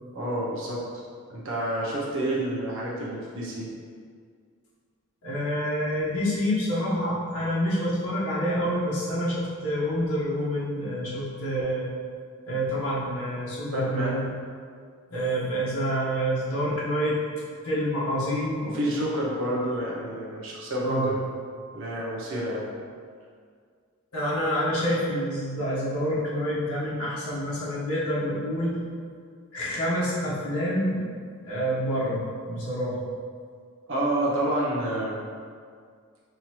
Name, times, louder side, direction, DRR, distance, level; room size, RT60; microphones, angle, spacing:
voice 1, 0.1-0.8 1.3-3.7 13.7-14.2 18.7-21.2 21.7-22.7 33.9-35.2, right 1 dB, 60° right, -5 dB, 0.7 m, -28 dB
voice 2, 5.2-11.9 12.4-14.2 15.1-17.2 17.6-18.7 20.8-21.1 24.1-28.8 29.5-31.0 31.4-33.0, equal, 80° left, -8 dB, 1.3 m, -27 dB
5.4 x 3.2 x 3.0 m, 2.1 s
head